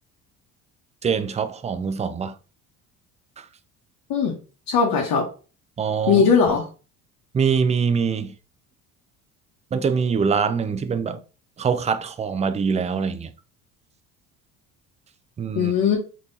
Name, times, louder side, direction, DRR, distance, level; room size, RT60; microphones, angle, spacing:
voice 1, 1.0-2.3 3.4-3.5 5.8-6.2 7.3-8.3 9.7-11.2 11.6-13.3 15.4-15.7, right 6 dB, 15° right, 0.4 m, -23 dB
voice 2, 4.7-5.2 6.1-6.6 15.5-16.0, left 6 dB, 55° left, 1.1 m, -19 dB
3.3 x 3.1 x 2.7 m
hypercardioid pair, 65°, 42 cm